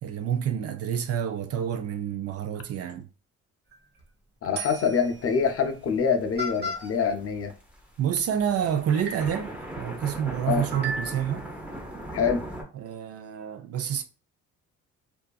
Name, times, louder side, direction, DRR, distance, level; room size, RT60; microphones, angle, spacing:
voice 1, 0.0-3.1 8.0-11.5 12.7-14.0, right 9 dB, 55° right, 0.4 m, -28 dB
sound 1, 3.7-4.0 4.6-5.1 6.0-6.1 6.4-6.9 8.4-8.5 9.0-9.4 10.7-11.4, right 1 dB, 35° right, 0.8 m, -34 dB
voice 2, 4.4-7.5 10.5-10.6 12.1-12.4, left 6 dB, 50° left, 0.5 m, -25 dB
sound 2, 4.7-5.9 6.2-7.8 8.2-8.3 8.5-12.6, right 1 dB, 5° right, 0.6 m, -38 dB
2.7 x 2.4 x 2.3 m
cardioid pair, 90°, 30 cm